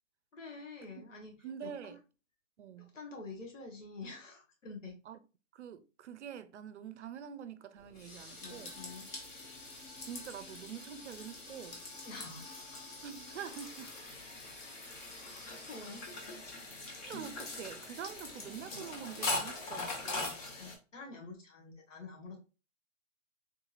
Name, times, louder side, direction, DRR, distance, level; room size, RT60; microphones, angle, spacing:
voice 1, 0.3-1.3 1.6-2.0 2.8-5.0 8.4-9.1 12.0-12.8 15.2-16.1 20.6-22.4, left 3 dB, 80° left, 1.7 m, -48 dB
voice 2, 1.4-2.0 2.6-2.9 5.1-5.2 5.5-8.7 10.0-11.8 13.0-13.9 17.0-20.4, right 8 dB, 65° right, 0.5 m, -46 dB
Kitchen.Dishes.Sink.Fussing, 7.8-20.8, left 2 dB, 30° left, 0.9 m, -42 dB
3.6 x 2.8 x 2.4 m
hypercardioid pair, 140°, 37 cm